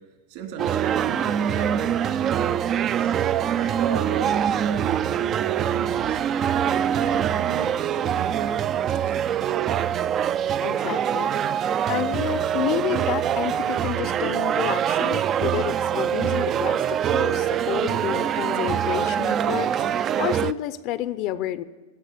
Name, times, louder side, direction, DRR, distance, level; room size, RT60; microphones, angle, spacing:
voice 1, 0.3-3.1 3.5-6.2 6.5-9.2, right 7 dB, 60° right, 2 dB, 3.1 m, -35 dB
sound 1, 0.6-20.5, right 9 dB, 30° right, 0.3 m, -24 dB
voice 2, 10.6-11.3 11.9-21.6, left 13 dB, 50° left, 15 dB, 0.6 m, -30 dB
16.5 x 6.2 x 8.5 m, 1.3 s
supercardioid pair, 130°, 0 cm